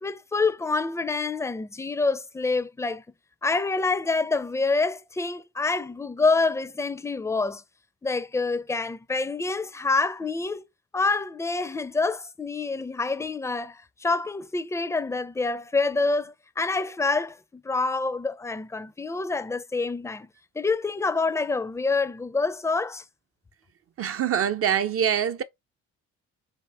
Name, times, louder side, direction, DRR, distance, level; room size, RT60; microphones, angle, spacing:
voice 1, 0.0-3.0 3.4-7.6 8.0-10.6 10.9-20.3 20.5-23.0, left 3 dB, 10° left, 0.4 m, -27 dB
voice 2, 24.0-25.4, right 9 dB, 50° right, 0.5 m, -24 dB
4.3 x 2.5 x 3.3 m
cardioid pair, 90°, 30 cm